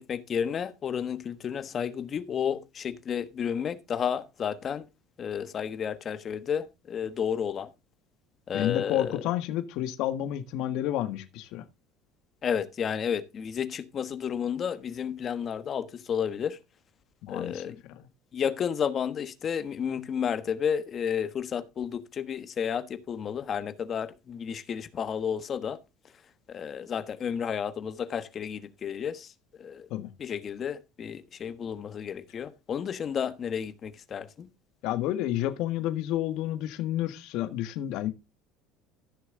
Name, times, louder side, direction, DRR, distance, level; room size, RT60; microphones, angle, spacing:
voice 1, 0.0-4.8 5.2-7.7 8.5-9.1 12.4-16.6 17.3-17.7 18.3-25.8 26.5-29.3 29.6-29.9 30.2-34.5, left 8 dB, 40° left, 1.2 m, -32 dB
voice 2, 8.5-11.6 17.2-18.1 29.9-30.1 34.8-38.1, left 13 dB, 70° left, 1.5 m, -30 dB
15.0 x 6.4 x 3.8 m
supercardioid pair, 100°, 0 cm